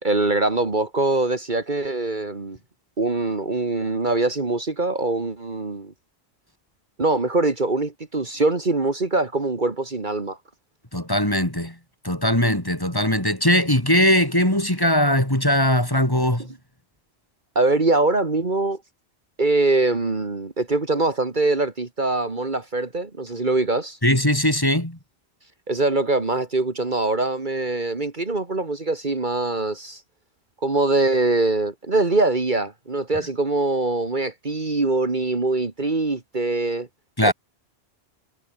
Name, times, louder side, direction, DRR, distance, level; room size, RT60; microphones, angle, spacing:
voice 1, 0.0-2.6 3.0-5.9 7.0-10.4 17.6-18.8 19.4-24.0 25.7-30.0 30.6-36.9 37.2-37.3, right 2 dB, 45° right, 2.2 m, -23 dB
voice 2, 10.9-11.7 12.0-16.4 24.0-25.0 37.2-37.3, left 1 dB, 20° left, 4.0 m, -20 dB
omnidirectional pair, 1.1 m